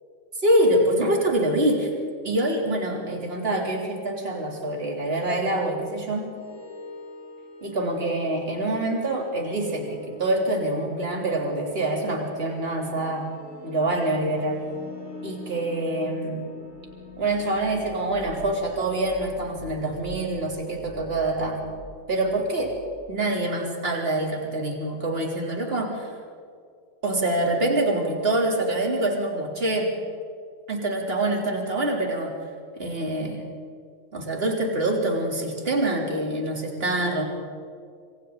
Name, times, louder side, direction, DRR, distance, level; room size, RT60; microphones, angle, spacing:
voice 1, 0.4-1.9 2.2-6.3 7.6-13.3 13.6-14.7 15.2-16.4 17.2-21.6 22.1-22.8 23.1-26.2 27.0-29.9 30.7-32.3 32.8-33.4 34.1-37.2, right 1 dB, 20° right, 0 dB, 3.3 m, -25 dB
sound 1, 6.3-22.9, left 2 dB, 80° left, 7.6 m, -44 dB
28.0 x 25.0 x 4.0 m, 2.2 s
omnidirectional pair, 3.7 m